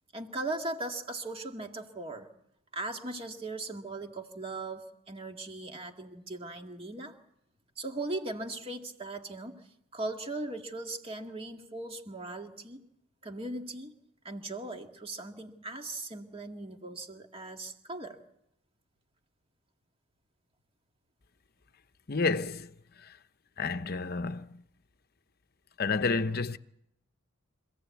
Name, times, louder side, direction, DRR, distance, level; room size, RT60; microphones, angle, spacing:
voice 1, 0.1-2.3 2.7-7.2 7.8-12.8 13.2-14.0 14.2-18.2, right 2 dB, 25° right, 2.0 m, -39 dB
voice 2, 22.1-22.7 23.0-23.1 23.6-24.6 25.8-26.6, left 4 dB, 45° left, 0.8 m, -30 dB
26.0 x 17.0 x 8.4 m
head